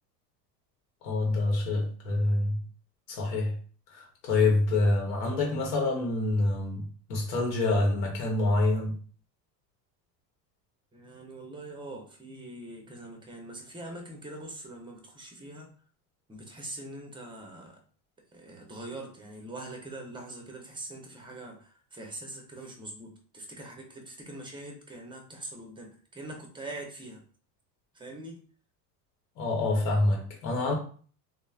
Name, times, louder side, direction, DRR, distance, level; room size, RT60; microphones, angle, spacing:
voice 1, 1.0-2.6 3.1-3.6 3.9-9.0 29.4-30.8, left 2 dB, 75° left, 1.0 m, -26 dB
voice 2, 10.9-15.7 16.3-17.8 18.3-27.2 27.9-28.4, right 2 dB, 10° right, 0.5 m, -43 dB
3.0 x 2.1 x 2.3 m
supercardioid pair, 100°, 50 cm